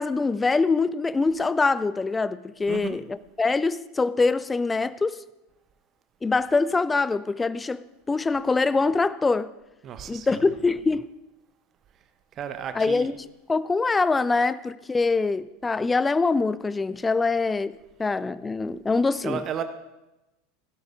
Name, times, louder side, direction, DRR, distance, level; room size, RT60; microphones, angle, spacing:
voice 1, 0.0-5.2 6.2-7.8 8.1-9.5 10.1-11.0 12.8-19.4, left 3 dB, 15° left, 0.5 m, -24 dB
voice 2, 2.7-3.0 9.8-10.5 12.3-13.1 19.2-19.6, right 8 dB, 35° right, 1.1 m, -33 dB
15.5 x 12.0 x 3.8 m
figure-of-eight pair, 80°, 0 cm